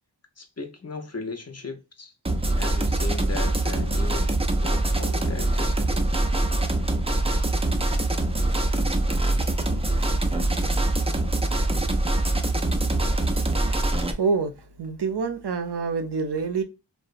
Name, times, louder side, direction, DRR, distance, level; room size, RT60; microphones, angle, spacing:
voice 1, 0.4-2.1 2.6-6.2, left 4 dB, 35° left, 0.6 m, -37 dB
sound 1, 2.3-14.1, right 2 dB, 15° right, 0.4 m, -24 dB
voice 2, 13.6-16.6, right 4 dB, 70° right, 0.6 m, -27 dB
2.9 x 2.0 x 2.4 m
wide cardioid pair, 55°, 42 cm